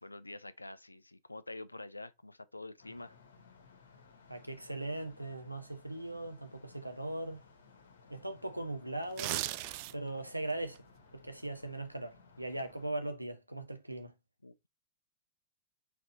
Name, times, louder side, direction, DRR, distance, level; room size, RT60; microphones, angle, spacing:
voice 1, 0.0-3.2 14.4-14.7, left 2 dB, 85° left, 0.4 m, -47 dB
sound 1, 2.8-12.9, left 5 dB, 65° left, 1.1 m, -60 dB
voice 2, 4.3-7.4 8.1-9.4 9.9-10.8 11.1-14.1, right 2 dB, 90° right, 0.7 m, -39 dB
sound 2, 9.0-10.2 10.6-10.8, right 16 dB, 45° right, 0.3 m, -36 dB
4.3 x 4.1 x 2.7 m
figure-of-eight pair, 90°, 0 cm